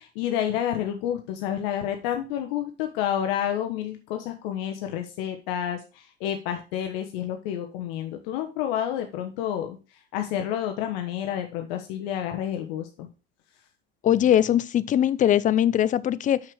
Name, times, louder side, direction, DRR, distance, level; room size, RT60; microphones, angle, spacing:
voice 1, 0.0-9.8 10.1-13.1, left 10 dB, 65° left, 1.1 m, -29 dB
voice 2, 14.0-16.4, left 10 dB, 25° left, 0.4 m, -21 dB
6.5 x 5.9 x 4.7 m
hypercardioid pair, 85°, 31 cm